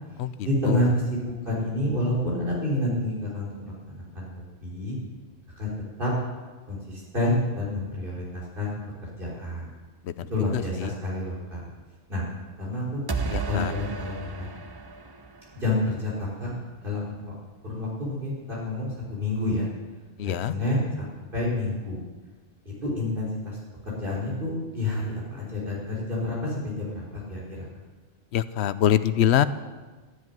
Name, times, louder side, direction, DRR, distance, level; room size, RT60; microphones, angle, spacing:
voice 1, 0.4-5.0 5.6-5.7 6.0-6.1 6.7-8.8 9.2-9.7 10.3-11.7 12.1-12.2 12.6-13.1 13.4-14.5 15.5-16.5 16.8-17.3 17.6-19.7 20.2-22.0 22.8-23.6 23.8-27.7, left 1 dB, 50° right, -5 dB, 3.9 m, -29 dB
voice 2, 10.5-10.9 13.3-13.7 20.2-20.5 28.3-29.4, left 11 dB, 75° left, 15 dB, 0.9 m, -24 dB
sound 1, 13.1-16.0, right 4 dB, 25° right, 0.6 m, -33 dB
12.5 x 7.6 x 9.5 m, 1.3 s
omnidirectional pair, 1.2 m